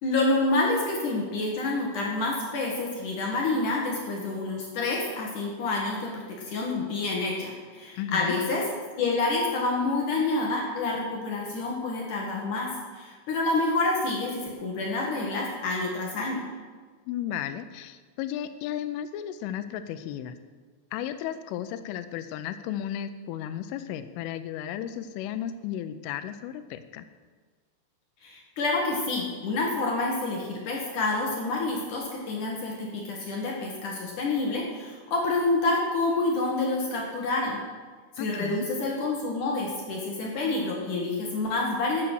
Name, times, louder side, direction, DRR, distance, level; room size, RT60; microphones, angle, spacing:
voice 1, 0.0-8.6 9.0-16.5 28.2-37.6 38.2-42.0, left 2 dB, 65° left, -1 dB, 2.1 m, -28 dB
voice 2, 8.0-8.3 17.1-20.4 20.9-27.1 38.2-38.7, left 10 dB, 85° left, 11 dB, 3.2 m, -34 dB
13.0 x 8.8 x 6.4 m, 1.5 s
omnidirectional pair, 5.6 m